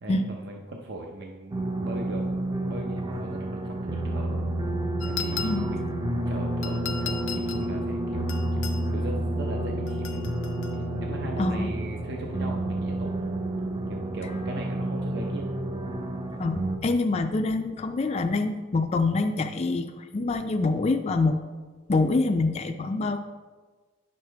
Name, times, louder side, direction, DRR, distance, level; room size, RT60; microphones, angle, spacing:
voice 1, 0.0-2.2 2.6-4.5 5.0-5.9 6.3-8.3 8.9-10.2 10.7-13.3 13.9-15.6, right 1 dB, 60° right, 1 dB, 0.7 m, -39 dB
sound 1, 1.5-16.8, right 1 dB, 20° right, 0.5 m, -30 dB
sound 2, 5.0-5.8 6.6-7.7 8.3-8.8 9.9-10.8, left 8 dB, 75° left, 0.6 m, -37 dB
voice 2, 11.4-11.7 16.4-21.4 21.9-23.2, left 3 dB, 30° left, 5 dB, 0.4 m, -25 dB
9.8 x 6.5 x 3.4 m, 1.4 s
head